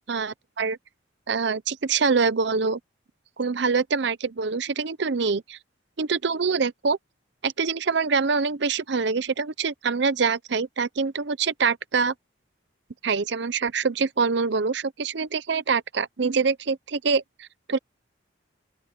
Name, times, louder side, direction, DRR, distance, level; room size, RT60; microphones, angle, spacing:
voice 1, 0.1-0.8 1.3-2.8 3.4-5.6 6.0-7.0 7.4-12.1 13.0-17.8, right 5 dB, 60° right, 0.6 m, -25 dB
open air
head